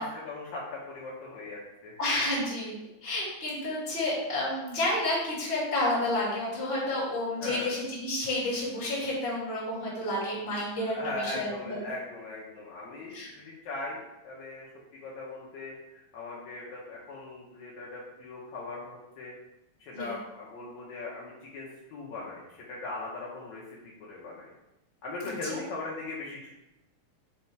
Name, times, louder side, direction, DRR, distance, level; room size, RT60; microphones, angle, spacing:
voice 1, 0.0-1.9 7.4-7.7 10.8-19.3 19.8-24.5 25.0-26.5, left 2 dB, 70° left, -6 dB, 2.2 m, -39 dB
voice 2, 2.0-2.8 3.0-11.8 13.1-13.3 19.9-20.1 25.5-25.6, left 1 dB, 20° left, -6 dB, 2.1 m, -30 dB
5.4 x 4.4 x 4.7 m, 0.94 s
omnidirectional pair, 3.7 m